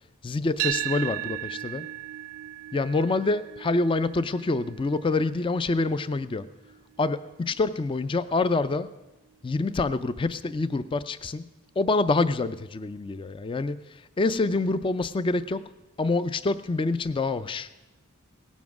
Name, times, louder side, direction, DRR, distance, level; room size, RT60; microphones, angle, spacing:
voice 1, 0.2-1.9 2.7-6.4 7.0-8.9 9.4-11.4 11.8-15.6 16.0-17.7, left 3 dB, 25° left, 14 dB, 0.3 m, -26 dB
sound 1, 0.6-8.8, right 14 dB, 75° right, 0.3 m, -37 dB
17.5 x 7.3 x 6.0 m, 1.1 s
head